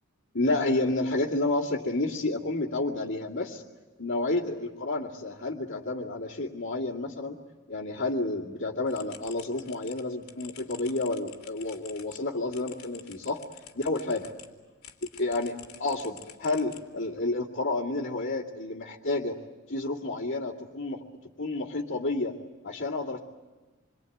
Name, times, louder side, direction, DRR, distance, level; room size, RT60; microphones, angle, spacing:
voice 1, 0.3-3.6 4.0-7.4 7.7-13.4 13.8-14.3 15.2-19.4 19.7-21.0 21.4-22.4 22.6-23.2, left 2 dB, 60° left, -7 dB, 2.3 m, -30 dB
sound 1, 8.9-14.5 14.8-17.2, left 9 dB, 90° left, 2.9 m, -49 dB
28.0 x 23.0 x 9.2 m, 1.2 s
head